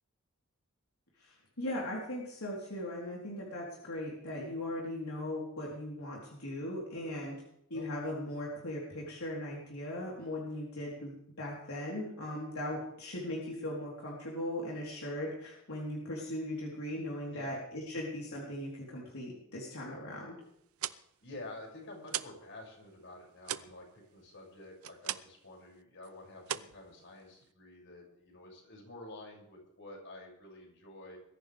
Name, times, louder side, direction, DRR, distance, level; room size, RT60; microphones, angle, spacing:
voice 1, 1.2-7.4 7.7-20.4, left 1 dB, 90° left, -3 dB, 4.0 m, -39 dB
sound 1, 20.6-22.5 22.8-25.5 25.8-26.1 26.4-27.5, right 11 dB, 85° right, 0.7 m, -40 dB
voice 2, 21.2-31.2, left 2 dB, 60° left, -1 dB, 7.0 m, -49 dB
22.0 x 14.5 x 3.6 m, 0.76 s
head